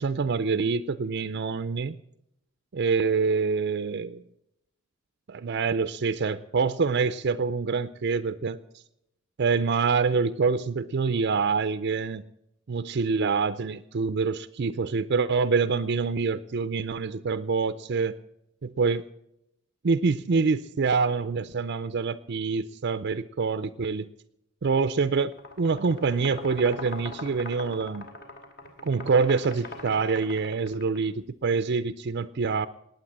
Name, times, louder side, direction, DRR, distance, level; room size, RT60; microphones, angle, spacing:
voice 1, 0.0-2.0 2.7-4.2 5.3-8.6 9.4-12.2 12.7-18.2 18.6-19.0 19.8-24.1 24.6-25.3 25.6-28.1 28.8-32.7, right 4 dB, 50° right, 12 dB, 0.5 m, -26 dB
sound 1, 25.2-31.0, left 2 dB, 50° left, 2.6 m, -41 dB
19.5 x 9.0 x 7.4 m, 0.81 s
head